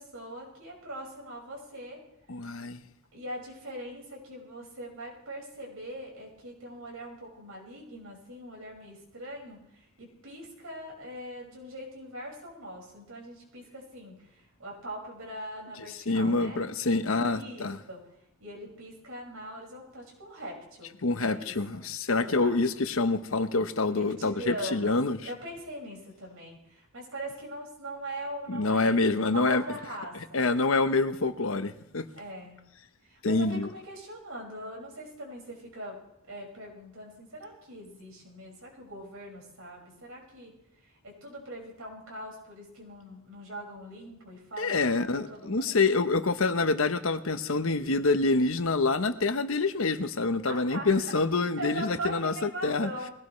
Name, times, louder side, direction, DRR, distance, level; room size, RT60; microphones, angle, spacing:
voice 1, 0.0-2.0 3.1-14.2 14.6-16.7 17.1-18.0 18.4-20.9 21.3-21.8 22.1-22.6 23.9-30.5 32.1-32.6 33.0-36.0 36.3-40.5 40.8-45.9 50.4-51.1 51.6-53.1, right 1 dB, 80° right, 5.8 m, -41 dB
voice 2, 2.3-2.8 15.8-17.8 21.0-25.2 28.5-29.6 30.3-32.1 33.2-33.7 44.6-52.9, left 3 dB, 75° left, 1.0 m, -26 dB
21.5 x 17.5 x 3.2 m
head